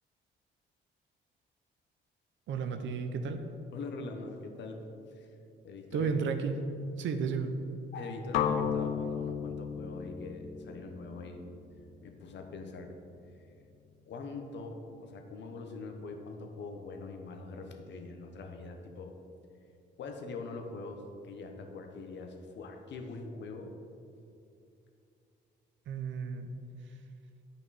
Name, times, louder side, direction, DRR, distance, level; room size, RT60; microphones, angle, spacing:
voice 1, 2.5-3.4 5.9-6.5 7.0-7.5 25.9-26.5, right 5 dB, 70° right, 7 dB, 0.7 m, -32 dB
voice 2, 3.7-4.8 5.1-5.3 5.6-6.1 7.9-11.4 12.0-12.9 14.0-19.2 20.0-23.7, left 3 dB, 65° left, 4 dB, 1.0 m, -43 dB
sound 1, 8.3-12.3, left 7 dB, 90° left, 0.5 m, -34 dB
9.9 x 5.3 x 4.1 m, 2.6 s
cardioid pair, 90°, 20 cm